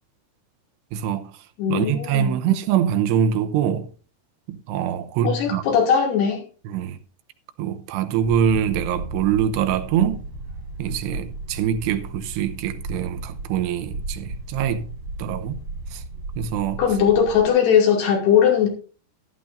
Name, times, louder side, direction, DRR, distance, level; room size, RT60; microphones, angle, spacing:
voice 1, 0.9-1.4 1.7-3.9 4.5-5.6 6.7-7.0 7.6-10.2 10.8-14.9 15.2-15.6 15.9-16.0 16.4-16.8, right 9 dB, 85° right, 2.9 m, -24 dB
voice 2, 1.6-2.4 5.2-6.4 16.8-18.7, left 7 dB, 70° left, 4.6 m, -19 dB
sound 1, 8.2-17.5, right 2 dB, 40° right, 7.4 m, -35 dB
14.5 x 12.0 x 2.6 m
omnidirectional pair, 4.9 m